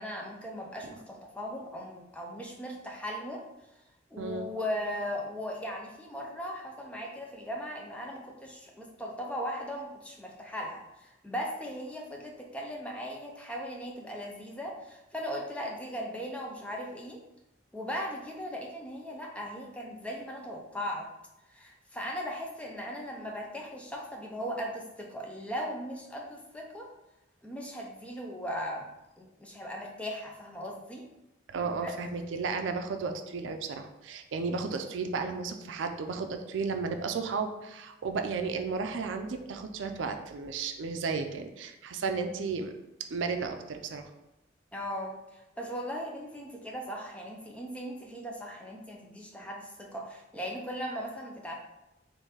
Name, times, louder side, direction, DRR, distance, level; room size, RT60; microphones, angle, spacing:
voice 1, 0.0-3.4 4.1-17.2 17.7-21.1 21.5-26.9 27.4-28.9 29.2-31.0 31.8-31.9 44.7-51.6, equal, 5° left, 0 dB, 0.4 m, -38 dB
voice 2, 4.2-4.5 31.5-42.7 43.1-44.1, right 4 dB, 80° right, 6 dB, 0.4 m, -33 dB
3.8 x 2.6 x 3.9 m, 0.95 s
head